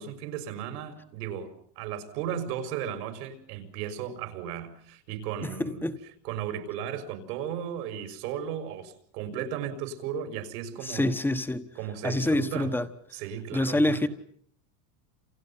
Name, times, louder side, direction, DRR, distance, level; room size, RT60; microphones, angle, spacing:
voice 1, 0.0-5.9 6.2-11.2 11.8-12.7 13.1-14.1, right 9 dB, 85° right, 5.9 m, -35 dB
voice 2, 5.4-6.0 10.8-11.6 12.0-12.9 13.5-14.1, left 1 dB, 5° left, 1.3 m, -26 dB
29.5 x 28.5 x 5.7 m
cardioid pair, 175°, 46 cm